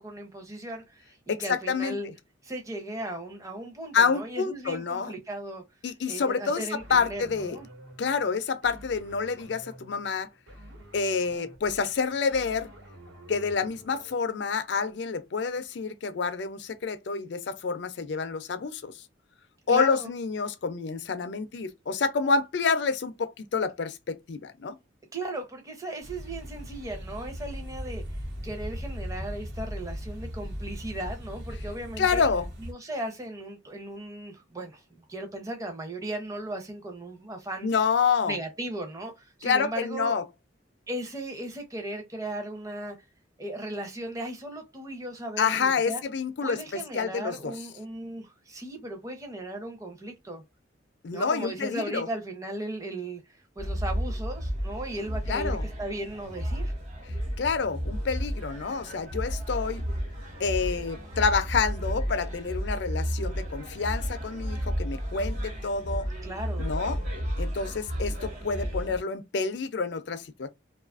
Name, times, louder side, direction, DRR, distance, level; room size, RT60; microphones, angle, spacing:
voice 1, 0.0-2.1 2.4-5.6 6.1-7.7 19.7-20.1 25.1-28.0 28.4-32.2 32.6-37.7 38.3-40.2 40.9-43.0 43.4-46.0 46.4-50.4 51.1-53.2 53.6-56.7 66.2-66.7, right 1 dB, 15° right, 0.7 m, -37 dB
voice 2, 1.3-2.0 3.9-5.1 5.8-7.6 8.0-10.3 10.9-12.7 13.3-19.0 19.7-24.8 32.0-32.5 37.6-38.4 39.4-40.2 45.4-47.5 51.0-52.1 55.3-55.6 57.4-59.8 60.4-66.1 66.6-67.0 67.4-70.5, left 5 dB, 65° left, 0.4 m, -28 dB
sound 1, 6.8-14.1, equal, 90° right, 1.3 m, -49 dB
sound 2, 26.0-32.7, equal, 60° right, 1.1 m, -37 dB
sound 3, 53.6-69.0, equal, 40° right, 1.2 m, -32 dB
2.6 x 2.4 x 2.4 m
head